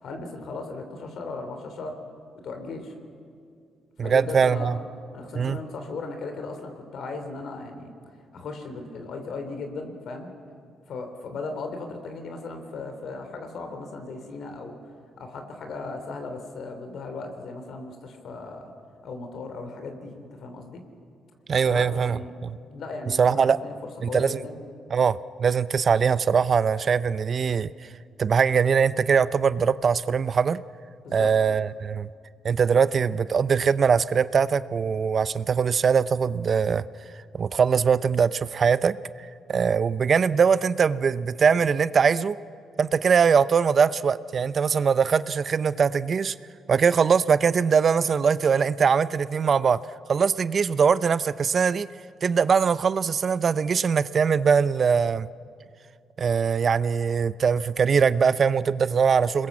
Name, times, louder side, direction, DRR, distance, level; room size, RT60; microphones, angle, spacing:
voice 1, 0.0-2.0 2.4-2.9 4.0-4.8 5.1-7.9 8.3-10.3 10.9-14.7 15.2-18.7 19.0-20.8 21.6-22.3 22.6-24.6 31.0-31.3, left 3 dB, 65° left, 6 dB, 3.3 m, -37 dB
voice 2, 4.0-4.8 5.3-5.6 21.5-22.6 23.2-23.6 24.0-24.4 24.9-27.9 28.2-30.6 31.1-32.1 32.4-36.8 37.3-42.4 42.8-46.3 46.7-49.8 50.1-51.9 52.2-55.3 56.2-59.5, right 6 dB, 45° right, 16 dB, 0.6 m, -22 dB
27.5 x 21.0 x 7.4 m, 2.3 s
cardioid pair, 90°, 0 cm